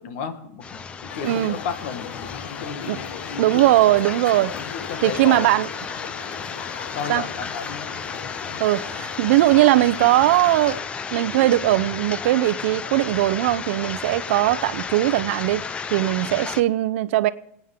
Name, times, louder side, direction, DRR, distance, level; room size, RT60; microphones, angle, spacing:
voice 1, 0.0-3.7 4.6-5.6 6.9-7.8, left 6 dB, 55° left, 1.7 m, -33 dB
sound 1, 0.6-16.6, left 5 dB, 15° left, 0.5 m, -33 dB
sound 2, 1.1-10.8, left 9 dB, 70° left, 1.0 m, -38 dB
voice 2, 1.2-1.6 2.8-3.0 3.4-4.5 5.0-5.7 7.1-7.2 8.6-10.8 11.1-15.6 15.9-17.3, right 15 dB, 60° right, 0.7 m, -19 dB
27.5 x 9.2 x 3.7 m
supercardioid pair, 160°, 8 cm